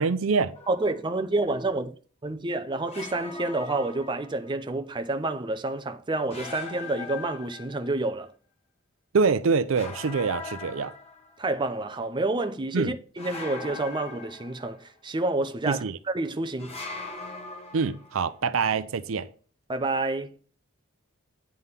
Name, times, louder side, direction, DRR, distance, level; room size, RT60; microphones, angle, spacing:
voice 1, 0.0-0.5 9.1-10.9 12.7-12.9 15.7-16.0 17.7-19.3, right 5 dB, 70° right, 0.5 m, -25 dB
sound 1, 0.5-1.1 2.9-4.5 6.3-8.0 9.7-11.4 13.2-14.9 16.6-18.2, left 4 dB, 30° left, 1.6 m, -40 dB
voice 2, 0.7-1.9 2.2-8.3 11.4-16.7 19.7-20.3, right 2 dB, 25° right, 0.6 m, -29 dB
9.5 x 3.8 x 6.7 m
head